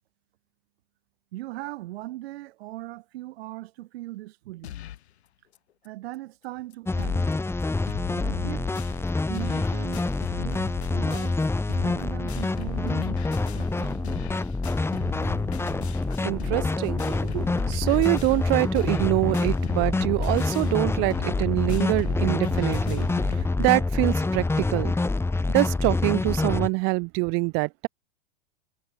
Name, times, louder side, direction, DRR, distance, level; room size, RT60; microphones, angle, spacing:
voice 1, 1.3-4.8 5.8-7.2 8.2-8.7 9.3-10.1 10.4-11.4 11.7-13.2 13.5-14.2, right 17 dB, 70° right, 6.6 m, -39 dB
sound 1, 4.6-5.1 5.5-5.6 5.8-5.9 6.4-6.5 6.7-7.3 7.6-23.5, left 12 dB, 85° left, 3.2 m, -39 dB
sound 2, 6.9-26.7, left 3 dB, 10° left, 2.2 m, -26 dB
voice 2, 16.2-24.9 25.5-27.9, right 31 dB, 40° right, 0.5 m, -25 dB
supercardioid pair, 125°, 32 cm